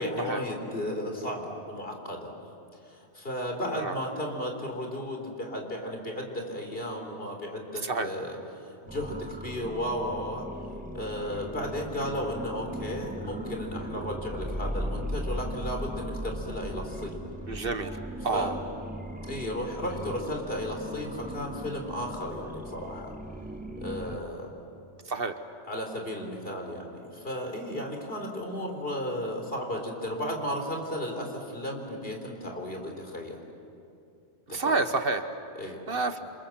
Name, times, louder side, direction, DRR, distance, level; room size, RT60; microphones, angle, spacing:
voice 1, 0.0-2.3 2.7-10.5 10.9-17.3 18.3-18.6 19.2-23.2 23.8-24.5 25.6-33.4 34.5-34.8 35.6-35.8, equal, 55° left, 2 dB, 4.1 m, -34 dB
sound 1, 8.9-24.2, equal, 10° right, 1.2 m, -38 dB
voice 2, 17.5-18.0 18.2-18.5 25.1-25.3 34.5-35.4 35.9-36.2, right 3 dB, 55° right, 8 dB, 1.3 m, -28 dB
28.0 x 27.5 x 7.5 m, 2.6 s
omnidirectional pair, 1.2 m